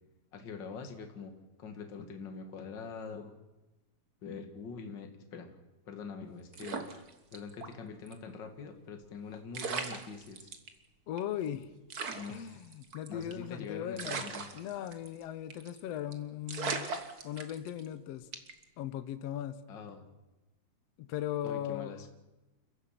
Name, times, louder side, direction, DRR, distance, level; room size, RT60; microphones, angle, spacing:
voice 1, 0.3-1.3 1.6-3.3 4.2-5.6 5.9-6.9 7.3-10.5 12.1-12.6 13.1-14.4 19.7-20.0 21.4-22.1, left 5 dB, 40° left, 5 dB, 2.1 m, -44 dB
sound 1, 6.5-7.7 8.1-8.2 9.2-9.3 9.5-10.7 11.2-11.3 11.5-11.6 11.9-13.5 14.0-15.2 15.5-15.8 16.1-16.2 16.5-17.9 18.3-18.6, right 5 dB, 85° right, 0.8 m, -38 dB
voice 2, 11.1-11.7 12.3-14.3 14.5-18.3 18.8-19.6 21.0-22.0, left 11 dB, 75° left, 11 dB, 1.5 m, -38 dB
29.0 x 15.0 x 5.9 m, 1.0 s
omnidirectional pair, 4.1 m